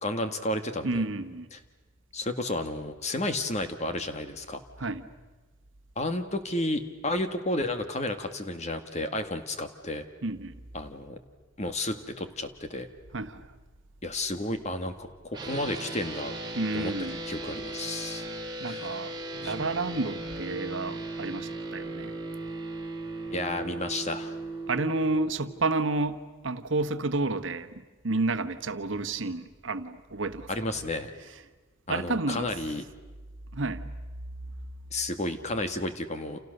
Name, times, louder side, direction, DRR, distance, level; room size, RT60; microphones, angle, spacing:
voice 1, 0.0-1.0 2.1-4.6 6.0-10.0 10.7-11.2 11.6-12.9 14.0-16.3 16.7-16.9 17.3-18.2 18.7-18.9 19.4-19.6 23.3-24.4 30.5-31.1 31.9-32.8 34.9-36.4, left 1 dB, 35° left, 8 dB, 1.8 m, -32 dB
voice 2, 0.8-1.5 4.8-5.0 10.2-10.6 13.1-13.4 16.5-17.2 18.6-22.1 24.7-30.5 31.9-32.5 33.5-33.9, right 2 dB, 70° right, 10 dB, 1.2 m, -30 dB
sound 1, 15.3-25.3, right 2 dB, 20° right, 3.4 m, -37 dB
29.5 x 28.5 x 6.6 m, 1.2 s
head